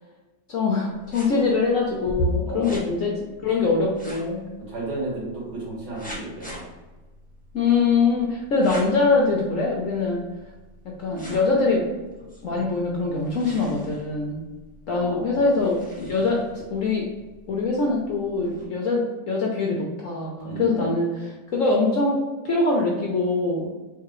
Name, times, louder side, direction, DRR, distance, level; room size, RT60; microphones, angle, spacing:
voice 1, 0.5-3.1 3.4-4.5 7.5-10.2 10.8-11.8 12.4-14.4 14.9-17.1 17.5-23.7, left 3 dB, 75° left, -2 dB, 0.7 m, -23 dB
sound 1, 0.9-18.6, equal, 5° left, 0.6 m, -39 dB
voice 2, 2.5-2.8 4.7-6.6 14.9-15.6 20.4-20.9, right 2 dB, 85° right, -6 dB, 2.4 m, -33 dB
4.7 x 3.3 x 3.0 m, 1.2 s
omnidirectional pair, 2.1 m